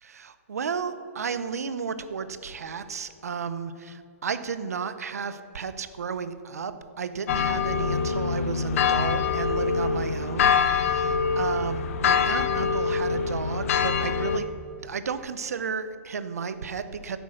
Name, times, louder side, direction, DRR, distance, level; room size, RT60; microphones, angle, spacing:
voice 1, 0.1-14.5 14.8-17.2, right 6 dB, 85° right, 12 dB, 0.8 m, -33 dB
sound 1, 7.3-14.4, left 6 dB, 65° left, 0.9 m, -24 dB
10.0 x 8.2 x 6.4 m, 2.4 s
hypercardioid pair, 130°, 8 cm